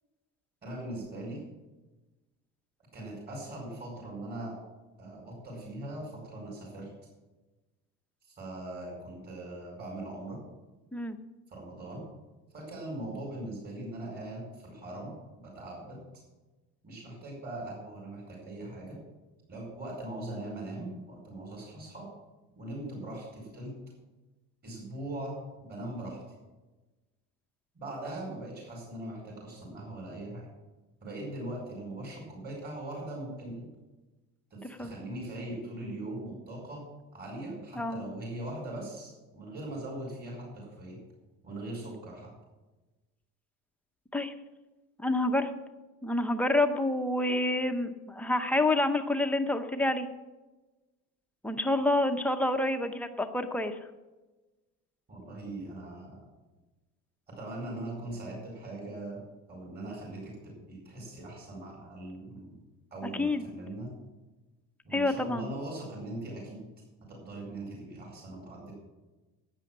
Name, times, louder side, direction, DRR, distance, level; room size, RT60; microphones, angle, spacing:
voice 1, 0.6-1.4 2.9-4.6 5.0-6.9 8.3-10.4 11.5-12.0 12.5-16.0 16.8-19.0 19.5-22.1 22.5-23.7 24.6-26.2 27.7-30.4 31.0-33.7 34.5-36.8 37.1-41.0 41.4-42.3 55.1-56.2 57.3-59.2 59.5-62.6 62.9-63.9 64.8-66.6 67.1-68.7, right 1 dB, 30° right, -2 dB, 4.9 m, -40 dB
voice 2, 45.0-45.5 46.0-50.1 51.4-53.8 63.2-63.5 64.9-65.5, left 2 dB, 5° left, 6 dB, 0.7 m, -28 dB
11.5 x 8.9 x 7.3 m, 1.1 s
cardioid pair, 170°, 34 cm